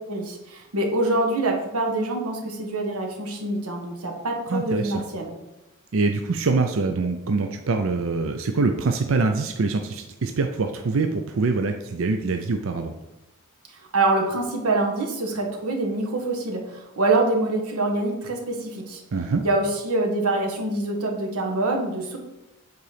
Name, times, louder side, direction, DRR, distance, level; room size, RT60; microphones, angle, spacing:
voice 1, 0.1-5.3 13.9-19.0 19.4-22.2, right 2 dB, 85° right, 1 dB, 1.4 m, -25 dB
voice 2, 4.5-4.9 5.9-12.9 19.1-19.4, right 3 dB, 60° right, 5 dB, 0.5 m, -24 dB
8.1 x 3.9 x 5.0 m, 0.95 s
head